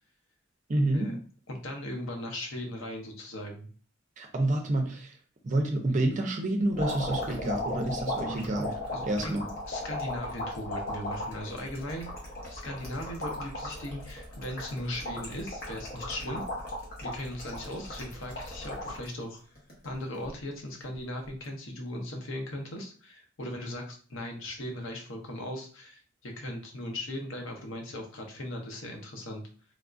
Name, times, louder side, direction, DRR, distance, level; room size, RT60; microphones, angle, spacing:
voice 1, 0.7-1.1 4.2-5.1 5.4-8.7 9.1-9.4, right 1 dB, 40° right, 3 dB, 0.5 m, -28 dB
voice 2, 1.5-3.7 8.9-9.4 9.7-12.1 12.5-16.4 17.0-19.4 19.8-29.4, left 1 dB, 85° left, 2 dB, 0.8 m, -38 dB
sound 1, 6.7-19.1 19.6-20.3 21.3-21.5, left 1 dB, 50° left, 1.1 m, -36 dB
3.3 x 2.4 x 2.5 m, 0.41 s
head